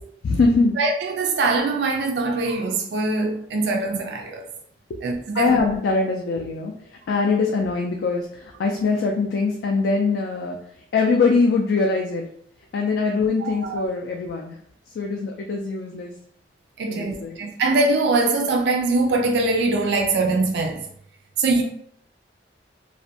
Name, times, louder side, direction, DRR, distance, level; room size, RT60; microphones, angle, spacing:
voice 1, 0.2-0.8 5.3-6.8 7.1-10.6 10.9-12.3 12.7-14.6 15.0-16.1 16.9-17.4, left 4 dB, 65° left, 0.3 m, -22 dB
voice 2, 0.8-4.4 5.0-5.6 13.4-13.8 16.8-20.8 21.4-21.6, right 3 dB, 70° right, 0.3 m, -22 dB
2.4 x 2.1 x 2.6 m
head